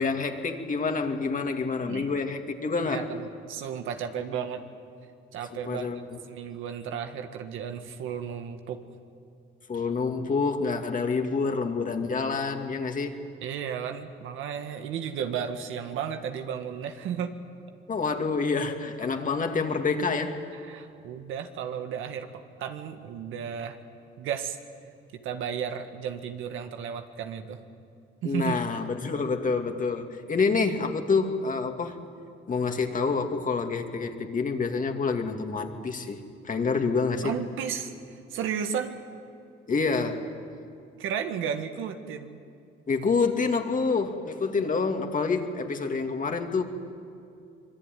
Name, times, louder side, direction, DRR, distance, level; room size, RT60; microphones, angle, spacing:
voice 1, 0.0-3.1 5.5-6.2 9.7-13.1 17.9-20.4 28.2-32.0 32.5-37.3 39.7-40.3 42.9-46.6, left 4 dB, 40° left, 4 dB, 2.5 m, -27 dB
voice 2, 2.8-4.6 5.3-5.9 6.3-8.8 13.4-17.3 20.6-23.8 24.2-24.6 25.1-27.6 28.2-28.6 37.2-37.9 38.3-39.0 41.0-42.4, right 8 dB, 90° right, 6 dB, 1.8 m, -33 dB
25.0 x 22.5 x 9.4 m, 2.5 s
cardioid pair, 90°, 20 cm